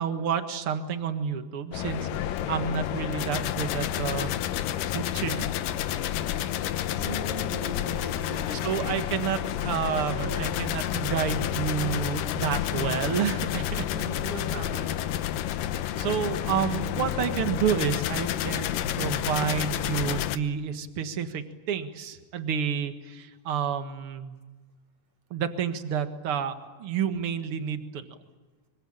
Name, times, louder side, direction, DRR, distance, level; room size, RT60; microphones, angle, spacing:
voice 1, 0.0-4.3 4.9-5.5 8.5-13.9 16.0-24.4 25.3-26.5 26.8-28.1, right 8 dB, 50° right, 8 dB, 2.1 m, -30 dB
sound 1, 1.7-20.4, left 12 dB, 80° left, 2.6 m, -30 dB
voice 2, 5.9-8.9 9.9-10.7 13.9-15.0, right 2 dB, 25° right, 5 dB, 4.7 m, -40 dB
25.0 x 24.5 x 8.9 m, 1.3 s
omnidirectional pair, 3.9 m